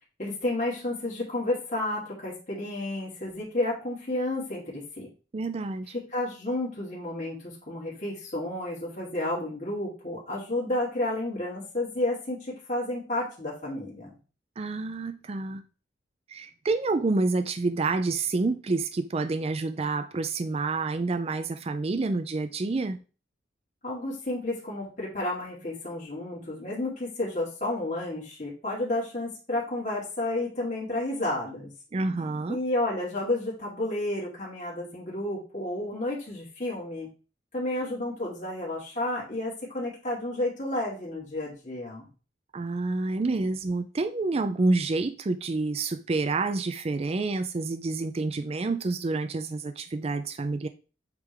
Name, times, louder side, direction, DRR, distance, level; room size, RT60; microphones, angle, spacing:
voice 1, 0.2-5.1 6.1-14.1 23.8-31.7 32.5-37.1 37.5-42.1, left 1 dB, 45° left, 2.6 m, -31 dB
voice 2, 5.3-5.9 14.6-15.6 16.3-23.0 31.9-32.6 42.5-50.7, right 3 dB, 35° right, 0.4 m, -28 dB
8.1 x 3.8 x 3.4 m
head